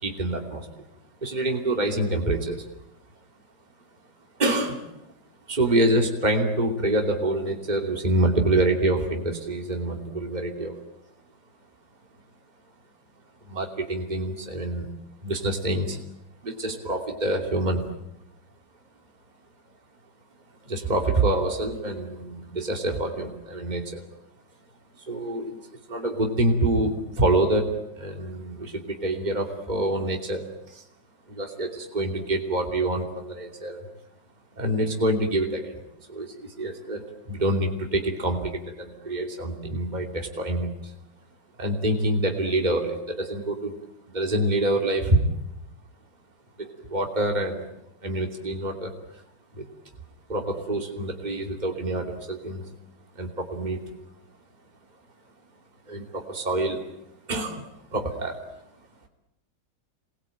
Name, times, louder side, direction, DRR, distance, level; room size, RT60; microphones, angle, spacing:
voice 1, 0.0-0.7 1.2-2.6 4.4-4.8 5.5-10.8 13.5-14.9 15.2-16.0 16.4-17.8 20.7-24.0 25.0-30.8 31.3-33.8 34.6-35.8 36.1-40.9 41.6-43.8 44.1-45.2 46.6-47.7 48.0-48.9 49.5-49.6 50.3-52.6 53.2-53.8 55.9-56.8 57.3-58.4, right 1 dB, 20° right, 3 dB, 2.9 m, -26 dB
27.5 x 21.5 x 9.0 m, 0.84 s
omnidirectional pair, 2.0 m